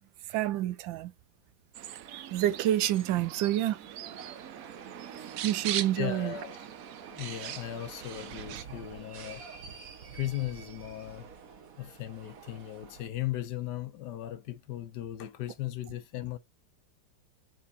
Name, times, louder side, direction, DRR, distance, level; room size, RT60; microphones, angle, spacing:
voice 1, 0.3-1.1 1.9-3.8 5.2-6.4, right 13 dB, 85° right, 1.4 m, -29 dB
sound 1, 1.7-8.6, right 11 dB, 70° right, 0.8 m, -40 dB
sound 2, 4.0-13.1, right 6 dB, 50° right, 1.3 m, -48 dB
voice 2, 6.0-6.6 7.1-9.4 10.1-11.3 11.8-16.4, left 13 dB, 70° left, 1.2 m, -37 dB
6.1 x 3.8 x 4.2 m
omnidirectional pair, 2.1 m